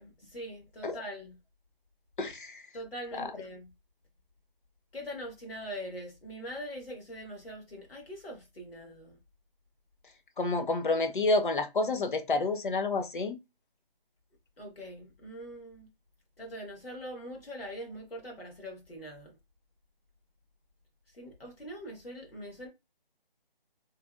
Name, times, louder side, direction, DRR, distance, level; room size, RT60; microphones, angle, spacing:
voice 1, 0.0-1.4 2.7-3.7 4.9-9.2 14.6-15.9 16.4-19.4 21.2-22.7, equal, 80° left, 1.4 m, -42 dB
voice 2, 2.2-2.6 3.1-3.3 10.4-13.4, left 3 dB, 60° left, 0.7 m, -29 dB
3.3 x 2.0 x 2.3 m
figure-of-eight pair, 160°, 29 cm